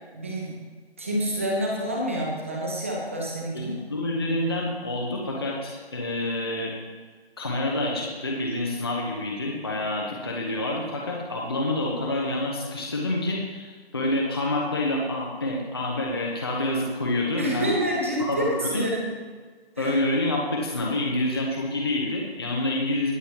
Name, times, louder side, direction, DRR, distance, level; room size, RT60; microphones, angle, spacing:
voice 1, 0.1-0.6 1.0-3.8 17.3-18.4 18.7-19.1 19.8-20.0, right 1 dB, 15° right, -2 dB, 1.1 m, -28 dB
voice 2, 3.5-6.7 7.4-17.7 18.2-18.9 19.8-23.1, left 1 dB, 25° left, -2 dB, 0.9 m, -27 dB
22.0 x 7.5 x 3.0 m, 1.5 s
figure-of-eight pair, 170°, 31 cm